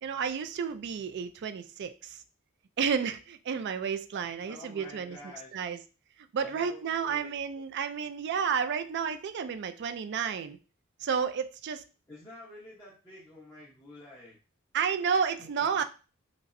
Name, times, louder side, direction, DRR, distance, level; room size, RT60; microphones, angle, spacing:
voice 1, 0.0-2.2 2.8-5.2 5.5-5.8 6.3-10.6 11.0-11.8 14.7-15.8, right 6 dB, 55° right, 9 dB, 0.3 m, -31 dB
voice 2, 4.5-5.7 6.4-7.4 12.1-14.4 15.4-15.8, left 2 dB, 15° left, -9 dB, 0.9 m, -49 dB
5.2 x 2.1 x 2.5 m, 0.33 s
head